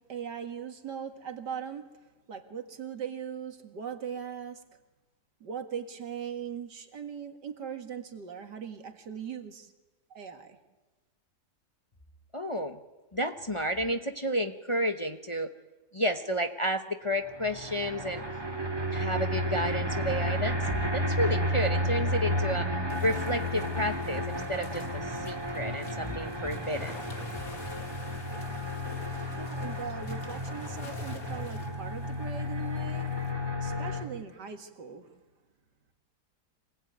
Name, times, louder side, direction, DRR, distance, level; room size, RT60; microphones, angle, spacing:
voice 1, 0.0-1.9 2.3-4.6 5.4-9.7 10.1-10.6 29.4-33.1 33.3-35.1, right 7 dB, 80° right, 6 dB, 2.5 m, -39 dB
voice 2, 12.3-12.8 13.1-15.5 15.9-18.2 18.9-22.7 23.0-27.0, equal, 20° left, 6 dB, 1.0 m, -31 dB
sound 1, 17.3-34.0, left 1 dB, 15° right, 2.4 m, -32 dB
sound 2, 22.9-33.3, left 4 dB, 55° left, 2.5 m, -50 dB
25.5 x 19.5 x 9.5 m, 1.1 s
omnidirectional pair, 1.8 m